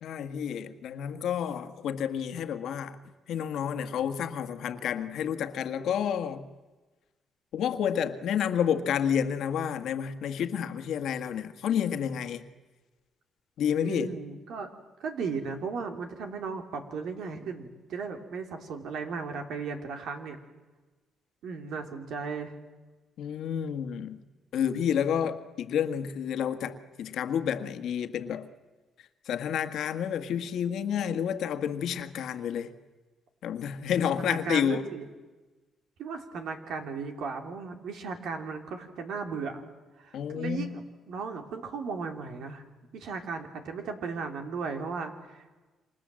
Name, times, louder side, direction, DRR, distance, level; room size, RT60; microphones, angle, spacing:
voice 1, 0.0-3.0 3.3-6.5 7.5-12.4 13.6-14.1 23.2-24.2 24.5-28.5 29.2-32.7 33.4-34.9 40.1-40.8, left 8 dB, 75° left, 1.7 m, -30 dB
voice 2, 13.8-14.7 15.0-20.4 21.4-22.5 34.2-35.0 36.0-39.6 40.0-40.8 41.1-42.6 42.9-45.6, right 5 dB, 75° right, 3.2 m, -36 dB
28.5 x 25.5 x 7.7 m
cardioid pair, 90°, 0 cm